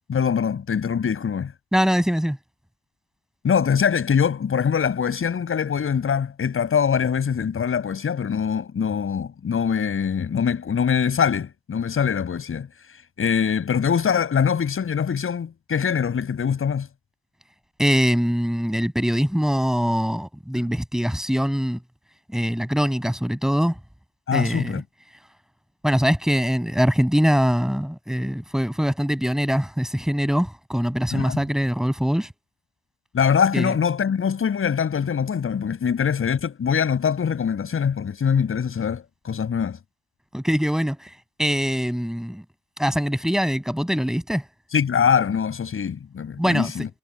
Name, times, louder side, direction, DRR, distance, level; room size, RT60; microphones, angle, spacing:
voice 1, 0.1-1.5 3.4-12.7 13.2-16.9 24.3-24.8 31.1-31.4 33.1-39.8 44.7-46.9, left 7 dB, 40° left, 6.7 m, -23 dB
voice 2, 1.7-2.4 17.8-21.8 22.3-23.8 24.3-24.8 25.8-32.3 33.5-33.8 40.3-41.1 41.4-42.4 42.8-44.4 46.4-46.7, equal, ahead, 7.6 m, -23 dB
supercardioid pair, 75°, 33 cm